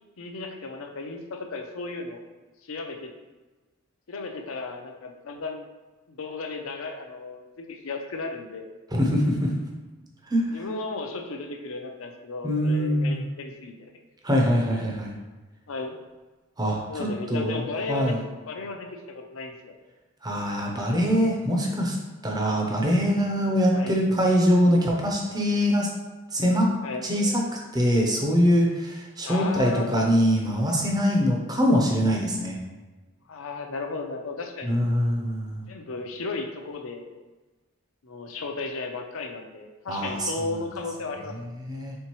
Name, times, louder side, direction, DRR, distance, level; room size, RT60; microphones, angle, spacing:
voice 1, 0.2-2.2 2.6-3.1 4.1-5.7 6.1-8.7 10.5-13.9 15.7-16.0 16.9-18.2 18.5-19.8 23.7-24.0 26.8-27.1 29.2-30.0 33.3-34.8 35.7-37.1 38.0-41.3, left 3 dB, 65° left, 4 dB, 0.5 m, -35 dB
voice 2, 8.9-9.5 10.3-10.6 12.4-13.3 14.2-15.1 16.6-18.2 20.2-22.0 22.2-25.9 26.3-26.7 27.0-27.4 27.7-32.6 34.6-35.6 39.9-40.6 41.3-42.0, equal, 20° right, -1 dB, 0.6 m, -23 dB
4.4 x 3.7 x 3.0 m, 1.2 s
head